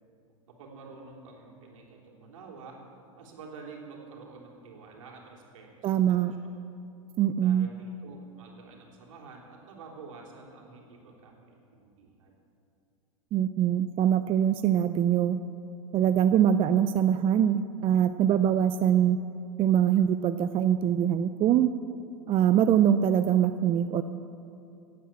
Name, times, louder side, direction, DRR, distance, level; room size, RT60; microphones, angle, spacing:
voice 1, 0.5-2.8 3.1-6.5 7.4-12.3, right 4 dB, 70° right, 0 dB, 3.6 m, -48 dB
voice 2, 5.8-6.3 7.2-7.7 13.3-15.4 15.9-19.2 19.6-21.7 22.3-24.0, right 9 dB, 30° right, 11 dB, 0.5 m, -23 dB
16.5 x 9.5 x 7.5 m, 2.6 s
hypercardioid pair, 105°, 17 cm